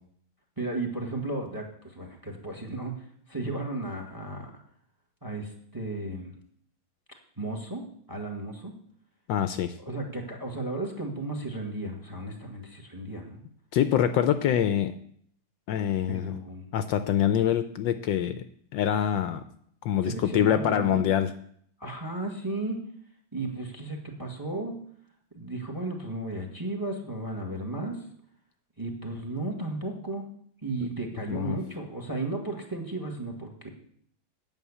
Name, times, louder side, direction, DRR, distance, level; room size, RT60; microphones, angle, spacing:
voice 1, 0.6-4.5 5.2-6.3 7.4-8.7 9.8-13.4 16.1-16.7 20.0-21.1 21.8-22.8 23.3-24.8 25.3-28.0 28.8-30.3 30.6-33.7, right 2 dB, 10° right, 2 dB, 1.4 m, -34 dB
voice 2, 9.3-9.7 13.7-14.9 15.7-16.3 16.7-18.4 18.7-19.4 19.8-21.3 31.3-31.6, left 10 dB, 75° left, 10 dB, 1.2 m, -25 dB
9.1 x 6.4 x 8.3 m, 0.63 s
omnidirectional pair, 2.2 m